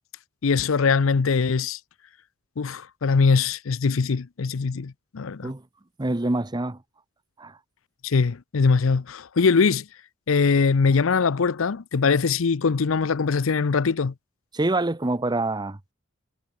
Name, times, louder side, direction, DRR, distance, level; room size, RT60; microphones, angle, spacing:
voice 1, 0.4-1.8 2.6-5.5 8.0-9.9 10.3-14.1, left 5 dB, 75° left, 0.6 m, -22 dB
voice 2, 6.0-6.8 7.4-7.6 14.5-15.9, right 2 dB, 20° right, 0.8 m, -26 dB
head